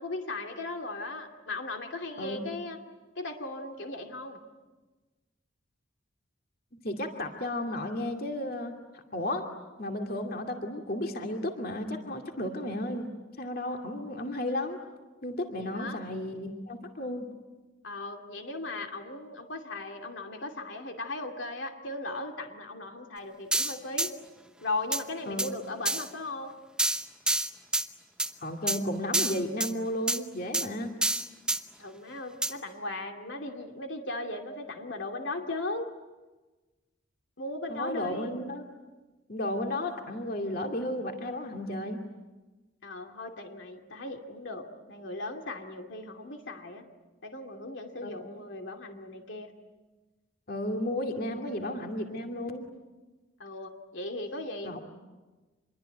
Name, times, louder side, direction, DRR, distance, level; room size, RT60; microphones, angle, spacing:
voice 1, 0.0-2.8 3.2-4.4 15.6-16.0 17.8-24.1 24.6-26.5 31.8-35.9 37.4-38.3 42.8-46.9 47.2-49.5 51.3-51.5 53.4-54.8, left 2 dB, 70° left, 4 dB, 2.6 m, -37 dB
voice 2, 2.2-2.6 6.8-9.5 9.8-13.1 13.4-14.8 15.2-17.3 25.3-25.6 28.4-30.9 37.7-38.7 39.3-42.0 48.0-48.1 50.5-52.7 54.6-54.8, left 1 dB, 45° left, 3 dB, 2.5 m, -33 dB
sound 1, 23.5-24.1 24.9-25.0 25.4-25.5 25.9-26.1 26.8-27.9 28.2-28.3 28.7-28.8 29.1-29.7 30.1-30.2 30.5-30.7 31.0-31.6 32.4-32.5, right 2 dB, 5° right, 0.9 m, -27 dB
27.0 x 22.5 x 9.2 m, 1.2 s
head